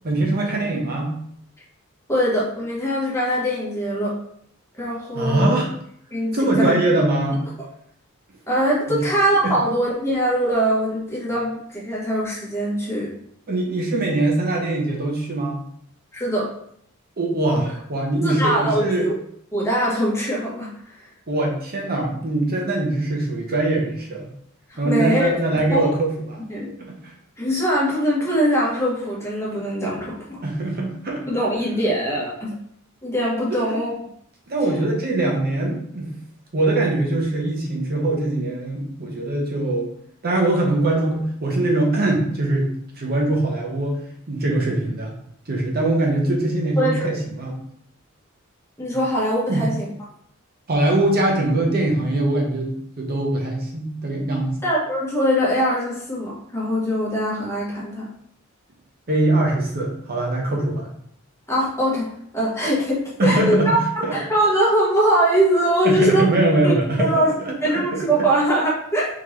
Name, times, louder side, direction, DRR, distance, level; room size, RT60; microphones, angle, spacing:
voice 1, 0.0-1.1 5.1-5.7 6.3-7.4 8.9-9.1 9.4-9.6 13.5-15.6 17.2-19.1 21.3-24.3 24.8-26.4 26.8-27.1 30.4-31.3 33.5-33.8 34.5-36.1 36.5-39.9 40.2-44.0 44.3-45.1 45.5-47.6 48.9-49.0 49.5-49.7 50.7-54.6 59.1-60.9 63.2-63.7 64.0-64.2 65.8-67.1 67.4-68.3, right 2 dB, 45° right, -1 dB, 0.8 m, -22 dB
voice 2, 2.1-4.2 4.7-5.5 6.1-6.8 8.5-13.1 16.1-16.5 18.2-19.2 19.5-20.7 24.7-25.3 25.7-25.9 26.5-26.7 27.4-30.4 31.3-32.5 33.0-33.9 46.8-47.0 48.8-49.9 54.6-58.1 61.5-62.1 62.3-63.8 64.1-66.3 66.6-66.7 67.0-67.3 67.6-69.1, equal, 15° left, -6 dB, 1.3 m, -22 dB
3.8 x 3.5 x 3.2 m, 0.67 s
head